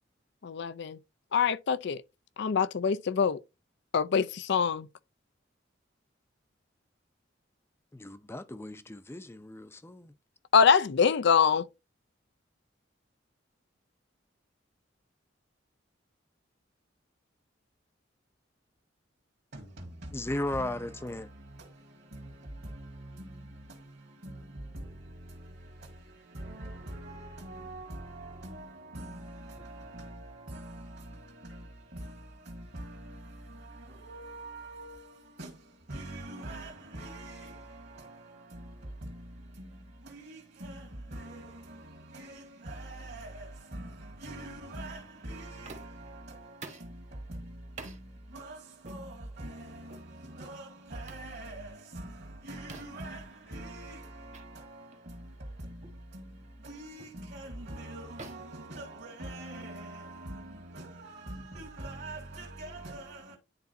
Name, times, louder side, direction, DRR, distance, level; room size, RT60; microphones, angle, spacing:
voice 1, 0.4-1.0 1.3-2.0 2.4-3.4 3.9-4.9 10.5-11.7, left 6 dB, 65° left, 0.4 m, -24 dB
voice 2, 7.9-10.0 20.1-21.3, left 1 dB, 15° left, 0.5 m, -36 dB
voice 3, 19.5-63.4, right 1 dB, 55° right, 1.7 m, -44 dB
sound 1, 45.6-46.1 46.6-47.0 47.8-48.0 48.8-49.0 49.9-50.1 51.1-51.3 52.7-53.1 54.3-54.5 54.9-55.1 55.8-56.1 57.0-57.2 58.2-59.4, right 3 dB, 40° right, 1.2 m, -48 dB
10.5 x 4.0 x 2.6 m
head